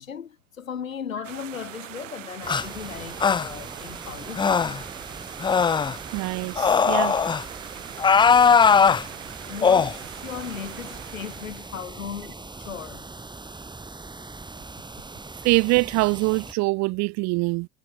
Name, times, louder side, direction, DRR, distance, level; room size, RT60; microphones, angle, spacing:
voice 1, 0.0-4.7 9.5-13.1, left 7 dB, 85° left, 3.0 m, -37 dB
sound 1, 1.2-11.7, right 13 dB, 70° right, 5.0 m, -42 dB
sound 2, 2.4-16.5, right 3 dB, 10° right, 4.3 m, -41 dB
sound 3, 2.5-2.6 3.2-3.5 4.4-4.8 5.4-6.0 6.6-7.4 8.0-9.0 9.6-9.9, left 6 dB, 10° left, 0.5 m, -19 dB
voice 2, 6.1-7.2 15.4-17.7, right 24 dB, 45° right, 0.8 m, -23 dB
figure-of-eight pair, 80°, 39 cm